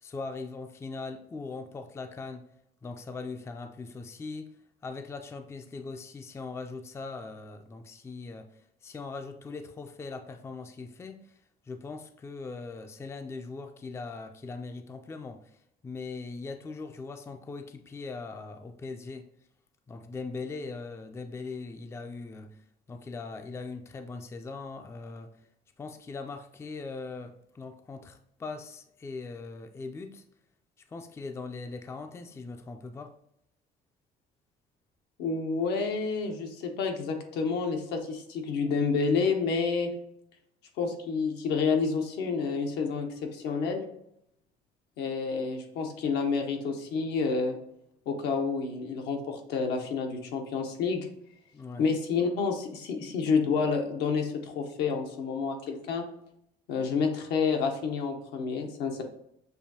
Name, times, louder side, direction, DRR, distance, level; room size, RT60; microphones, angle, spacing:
voice 1, 0.0-2.4 2.8-4.5 4.8-11.3 11.7-19.3 19.9-25.3 25.8-30.2 30.9-33.2 51.5-51.9, left 4 dB, 15° left, 7 dB, 0.3 m, -40 dB
voice 2, 35.2-39.9 40.8-43.8 45.0-47.6 48.1-51.1 51.8-56.1 56.7-59.0, left 5 dB, 85° left, 3 dB, 0.8 m, -29 dB
6.7 x 2.6 x 2.7 m, 0.76 s
cardioid pair, 110°, 17 cm